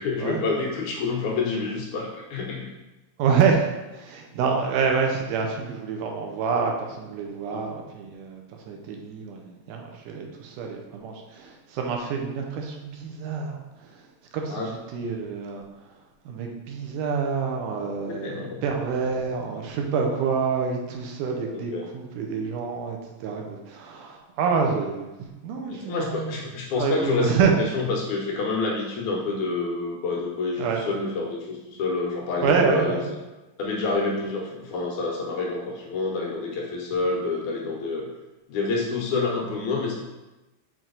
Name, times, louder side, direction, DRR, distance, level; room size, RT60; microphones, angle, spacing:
voice 1, 0.0-2.7 7.5-7.7 14.5-14.7 18.1-18.6 21.5-21.9 25.7-33.0 33.6-38.1 38.5-40.0, left 3 dB, 70° left, -1 dB, 2.2 m, -28 dB
voice 2, 3.2-13.9 14.3-15.7 16.3-25.1 25.4-26.4 26.8-27.5 30.6-30.8 32.4-33.0, right 5 dB, 80° right, 1 dB, 2.2 m, -27 dB
6.0 x 4.5 x 3.9 m, 1.1 s
omnidirectional pair, 3.8 m